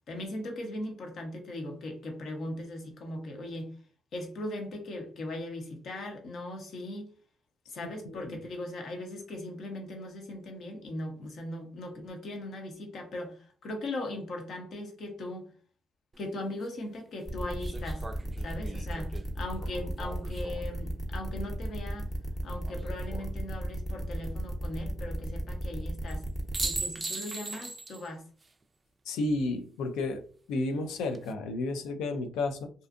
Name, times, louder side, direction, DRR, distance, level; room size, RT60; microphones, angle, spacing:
voice 1, 0.1-3.7 4.1-7.1 7.7-15.4 16.2-18.0 18.4-22.1 22.4-26.2 26.6-28.2, left 1 dB, 65° left, 0.8 m, -39 dB
voice 2, 8.1-8.4 29.1-30.2 30.5-32.7, left 2 dB, 80° left, 0.3 m, -32 dB
sound 1, 16.1-16.2 17.6-20.8 22.6-23.3 26.1-26.2 26.5-28.1 28.4-28.5 30.8-31.3, right 3 dB, 30° right, 0.3 m, -39 dB
sound 2, 17.3-26.8, right 1 dB, 20° left, 0.8 m, -35 dB
2.5 x 2.4 x 2.4 m
supercardioid pair, 65°, 0 cm